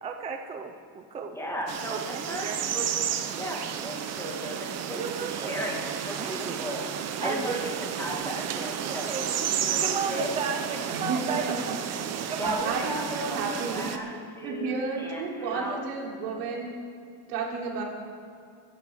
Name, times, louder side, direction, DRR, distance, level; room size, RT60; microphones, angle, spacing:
voice 1, 0.0-1.4 1.9-2.6 5.0-5.6 6.2-6.6 7.2-7.6 9.1-9.3 9.8-11.4 12.3-12.6, right 6 dB, 15° right, 4 dB, 0.4 m, -34 dB
voice 2, 1.3-3.0 3.4-6.8 7.1-10.7 12.4-13.4 13.7-15.8, equal, 5° left, -1 dB, 1.8 m, -36 dB
sound 1, 1.7-14.0, right 9 dB, 35° right, 0.8 m, -32 dB
voice 3, 10.9-11.7 12.0-12.3 12.7-14.0 14.4-16.8 17.3-17.8, right 4 dB, 80° right, -2 dB, 3.6 m, -32 dB
22.5 x 11.0 x 3.7 m, 2.5 s
cardioid pair, 155°, 48 cm